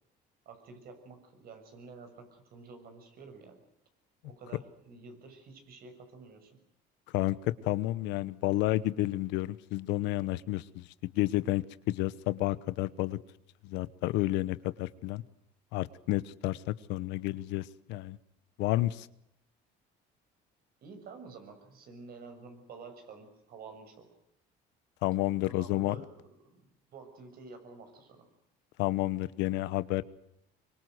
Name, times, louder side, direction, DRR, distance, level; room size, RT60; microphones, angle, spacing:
voice 1, 0.4-3.6 4.2-6.6 20.8-24.1 25.4-28.3, right 4 dB, 55° right, 6 dB, 6.8 m, -50 dB
voice 2, 7.1-13.2 13.6-15.2 15.7-18.2 18.6-19.1 25.0-26.0 28.8-30.0, left 17 dB, 85° left, 16 dB, 1.1 m, -31 dB
24.0 x 24.0 x 8.0 m, 0.78 s
cardioid pair, 115°, 18 cm